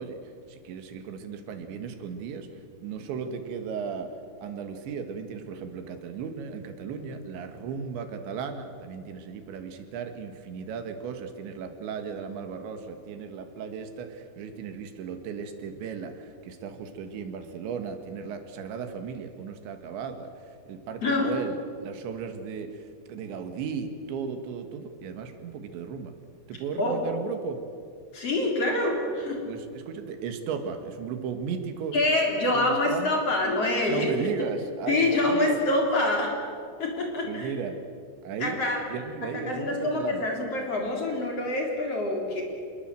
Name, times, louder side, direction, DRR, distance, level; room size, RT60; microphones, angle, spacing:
voice 1, 0.0-2.5 2.8-4.1 4.4-26.1 26.5-27.6 29.5-32.0 32.3-33.2 33.9-35.6 37.2-37.8 38.2-40.3, right 6 dB, 85° right, 7 dB, 4.0 m, -36 dB
voice 2, 21.0-21.4 26.8-27.0 28.1-29.4 31.9-34.1 34.9-36.3 36.8-37.5 38.4-38.8 39.3-42.4, left 2 dB, 35° left, 0 dB, 4.1 m, -26 dB
27.0 x 20.5 x 7.7 m, 2.3 s
omnidirectional pair, 5.1 m